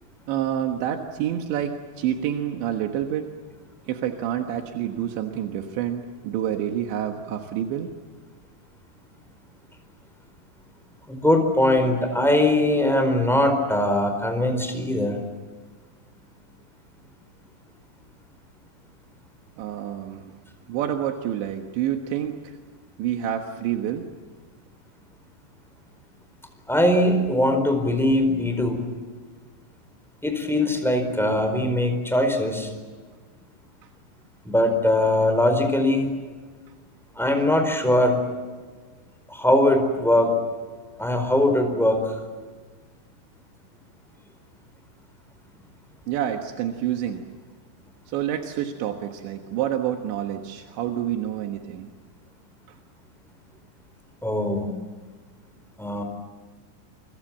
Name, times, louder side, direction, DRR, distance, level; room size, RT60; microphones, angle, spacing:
voice 1, 0.3-3.4 3.9-7.9 19.6-20.3 20.7-22.6 23.0-24.1 46.1-47.3 48.1-51.9 52.7-52.8, right 10 dB, 85° right, 5 dB, 3.7 m, -28 dB
voice 2, 11.1-15.2 26.7-28.9 30.2-32.7 34.4-36.1 37.2-38.2 39.3-40.3 41.0-42.2 54.2-54.7 55.8-56.0, left 1 dB, ahead, 5 dB, 3.9 m, -21 dB
29.0 x 24.5 x 7.5 m, 1.4 s
omnidirectional pair, 5.1 m